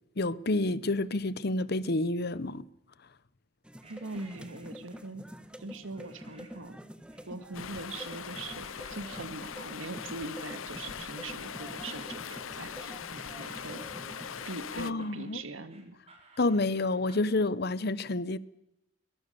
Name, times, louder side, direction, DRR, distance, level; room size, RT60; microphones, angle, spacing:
voice 1, 0.2-2.7 14.7-15.4 16.4-18.4, left 2 dB, 50° left, 0.9 m, -29 dB
sound 1, 3.6-14.5, equal, 5° right, 1.4 m, -47 dB
sound 2, 3.8-5.1 5.9-6.7 7.1-7.7 8.1-17.3, right 3 dB, 30° right, 4.9 m, -58 dB
voice 2, 3.9-5.3 5.6-6.8 7.3-14.1 14.5-16.0, right 2 dB, 75° right, 2.1 m, -42 dB
Stream, 7.5-14.9, left 8 dB, 80° left, 0.7 m, -41 dB
23.0 x 19.5 x 7.0 m
head